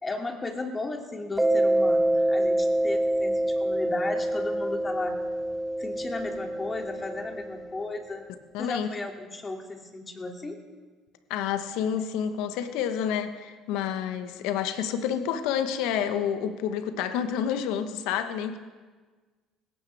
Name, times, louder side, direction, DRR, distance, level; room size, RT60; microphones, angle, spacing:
voice 1, 0.0-5.2 5.8-8.3 8.6-10.6, left 3 dB, 25° left, 2 dB, 2.6 m, -35 dB
Mallet percussion, 1.4-7.7, right 1 dB, 5° right, 1.2 m, -26 dB
voice 2, 8.5-8.9 11.3-18.6, left 8 dB, 75° left, 9 dB, 1.2 m, -29 dB
20.0 x 17.0 x 3.5 m, 1.4 s
hypercardioid pair, 65°, 0 cm